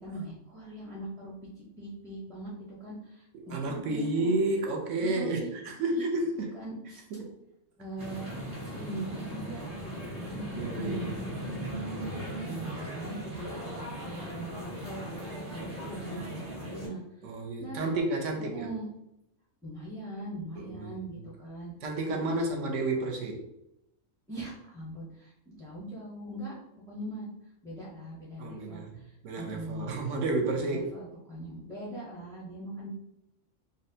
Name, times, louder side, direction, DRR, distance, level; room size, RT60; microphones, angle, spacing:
voice 1, 0.0-4.3 5.0-5.5 5.7-6.1 6.5-7.0 7.8-8.4 8.6-11.1 12.1-17.9 18.5-18.9 19.6-21.7 22.1-22.7 24.3-26.5 26.9-27.3 27.6-29.9 30.4-32.9, right 1 dB, 5° left, -7 dB, 0.3 m, -41 dB
voice 2, 3.3-6.5 7.1-7.3 10.6-11.2 11.7-12.1 17.2-18.7 20.6-21.2 21.8-23.5 28.4-30.9, right 2 dB, 70° right, 2 dB, 0.9 m, -31 dB
sound 1, 8.0-16.9, right 1 dB, 45° right, 1.7 m, -38 dB
4.0 x 2.1 x 2.6 m, 0.85 s
omnidirectional pair, 1.4 m